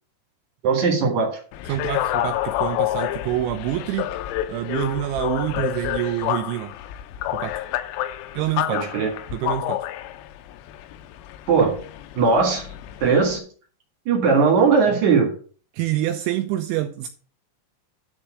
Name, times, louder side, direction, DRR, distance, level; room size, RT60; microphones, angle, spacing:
voice 1, 0.6-1.4 8.7-9.1 11.5-11.8 12.2-12.7 13.0-13.4 14.1-15.3, right 5 dB, 55° right, 2 dB, 2.3 m, -19 dB
sound 1, 1.5-13.4, left 13 dB, 90° left, 3.6 m, -29 dB
voice 2, 1.7-4.1 4.5-6.8 7.3-7.6 8.3-8.8 9.3-9.9 15.7-17.1, right 13 dB, 90° right, 7 dB, 2.7 m, -26 dB
11.0 x 4.5 x 6.0 m, 0.40 s
omnidirectional pair, 6.0 m